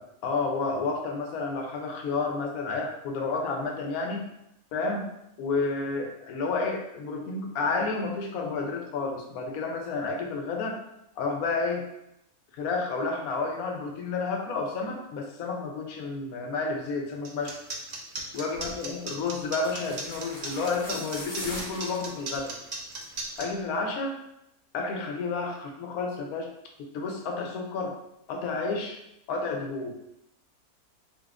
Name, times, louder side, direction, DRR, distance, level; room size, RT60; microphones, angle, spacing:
voice 1, 0.0-4.3 4.7-5.1 5.4-10.8 11.2-11.9 12.5-17.6 18.3-22.5 23.4-24.2 24.7-26.5 26.9-27.9 28.3-29.0 29.3-30.0, left 4 dB, 75° left, 2 dB, 1.1 m, -30 dB
sound 1, 17.2-23.5, right 3 dB, 55° right, 0.4 m, -36 dB
sound 2, 18.5-18.8 19.6-22.5 22.9-23.2 23.5-23.6, equal, 35° left, 1.1 m, -41 dB
5.1 x 2.8 x 2.4 m, 0.81 s
omnidirectional pair, 1.6 m